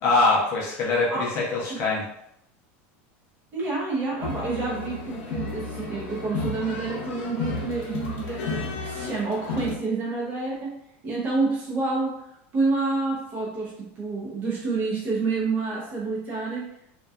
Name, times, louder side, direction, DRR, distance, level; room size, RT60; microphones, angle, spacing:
voice 1, 0.0-2.0, left 3 dB, 35° left, -3 dB, 0.5 m, -23 dB
voice 2, 3.5-10.8 11.0-12.3 12.5-16.6, right 3 dB, 25° right, -6 dB, 0.6 m, -28 dB
sound 1, 4.2-9.8, left 3 dB, 80° left, 0.6 m, -33 dB
2.6 x 2.2 x 2.3 m, 0.76 s
supercardioid pair, 175°, 7 cm